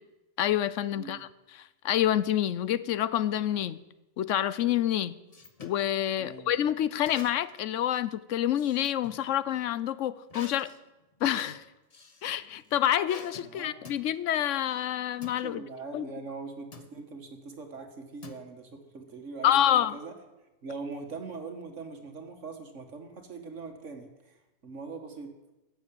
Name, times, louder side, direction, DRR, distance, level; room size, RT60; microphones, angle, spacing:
voice 1, 0.4-3.8 4.2-5.2 5.6-10.7 11.2-11.6 12.2-15.6 15.9-16.0 19.4-20.0, left 11 dB, 85° left, 16 dB, 1.0 m, -27 dB
voice 2, 0.9-1.2 6.2-6.5 13.4-13.8 15.4-20.1 20.6-25.3, right 4 dB, 80° right, 5 dB, 2.1 m, -42 dB
sound 1, 4.7-5.8 7.0-7.6 8.0-9.2 10.3-12.3 13.1-13.5 13.8-14.1 15.2-15.4 16.7-17.0 18.2-18.8, left 4 dB, 35° left, 1.0 m, -47 dB
14.5 x 7.4 x 8.6 m, 1.0 s
omnidirectional pair, 1.2 m